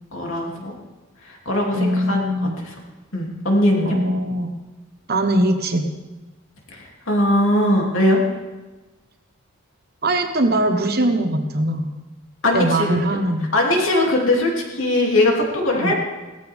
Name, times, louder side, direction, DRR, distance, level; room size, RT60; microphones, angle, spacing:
voice 1, 0.1-0.7 1.2-2.2 3.1-4.0 6.7-8.2 12.4-13.0 13.5-15.9, left 1 dB, 70° left, -1 dB, 3.0 m, -20 dB
voice 2, 1.7-2.6 3.8-4.5 5.1-5.9 10.0-11.9 12.5-13.5 15.7-15.9, right 1 dB, 50° right, 5 dB, 1.3 m, -21 dB
17.5 x 14.0 x 3.7 m, 1.2 s
head